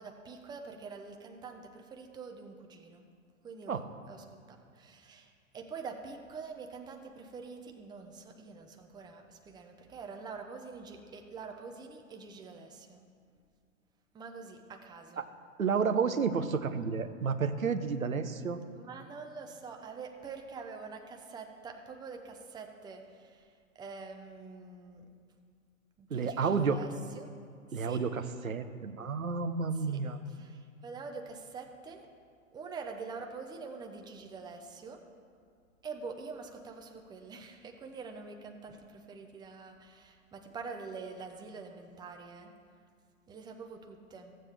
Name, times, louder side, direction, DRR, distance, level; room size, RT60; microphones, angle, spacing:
voice 1, 0.0-3.1 3.4-13.0 14.1-15.2 18.7-25.1 26.0-27.3 27.7-28.0 29.7-30.0 30.3-32.1 32.5-35.0 35.8-42.5 43.3-44.4, right 4 dB, 10° right, 4 dB, 0.6 m, -45 dB
voice 2, 15.6-18.6 26.1-26.8 27.7-30.2, right 5 dB, 90° right, 8 dB, 0.7 m, -31 dB
15.5 x 7.6 x 3.3 m, 2.2 s
figure-of-eight pair, 100°, 40 cm